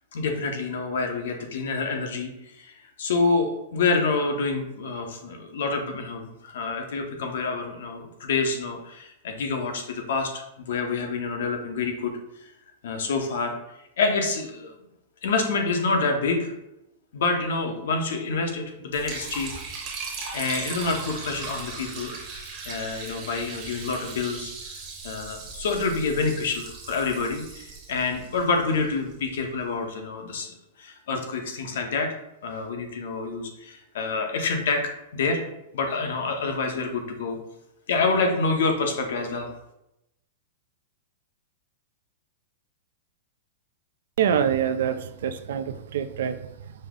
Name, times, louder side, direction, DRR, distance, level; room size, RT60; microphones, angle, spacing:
voice 1, 0.1-2.3 2.6-2.7 3.0-12.1 12.8-13.6 14.0-14.7 15.2-16.5 17.1-19.5 20.3-24.7 25.0-32.2 32.4-34.8 35.1-35.4 35.7-37.4 37.9-39.5, left 4 dB, 70° left, 4 dB, 0.8 m, -27 dB
Liquid, 18.9-29.1, right 4 dB, 25° right, 0.9 m, -38 dB
voice 2, 44.2-46.7, right 8 dB, 65° right, 9 dB, 0.3 m, -26 dB
5.3 x 2.0 x 3.7 m, 0.86 s
supercardioid pair, 175°, 0 cm